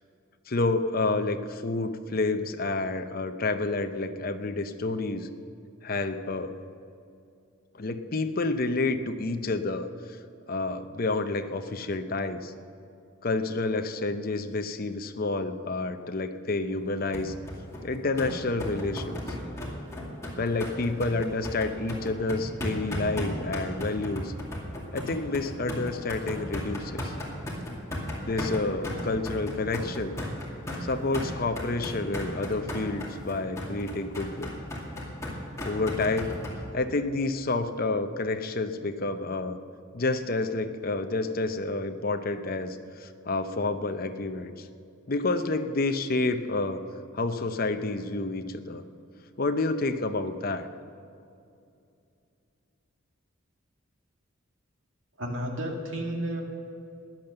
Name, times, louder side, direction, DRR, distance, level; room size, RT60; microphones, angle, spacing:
voice 1, 0.5-5.3 5.8-6.6 7.7-9.9 10.5-12.5 13.2-17.3 17.8-19.2 20.4-24.3 24.9-27.1 28.2-30.2 30.8-34.6 35.6-36.4 36.7-39.6 39.9-44.7 45.1-46.8 47.1-48.8 49.4-50.7, left 3 dB, 45° left, 8 dB, 0.7 m, -29 dB
sound 1, 17.1-36.6, left 1 dB, 15° left, 2.4 m, -35 dB
voice 2, 55.2-56.4, right 1 dB, 70° right, 1 dB, 2.2 m, -32 dB
15.5 x 10.5 x 6.7 m, 2.5 s
head